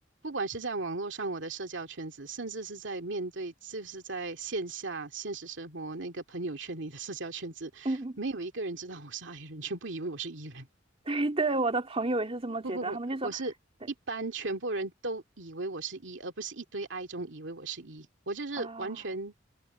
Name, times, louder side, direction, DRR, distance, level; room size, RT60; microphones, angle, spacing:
voice 1, 0.2-10.7 12.6-13.0 13.2-13.5 13.9-19.3, right 3 dB, 80° right, 2.3 m, -36 dB
voice 2, 7.8-8.2 11.1-13.3 18.6-19.0, right 2 dB, 30° right, 2.7 m, -30 dB
head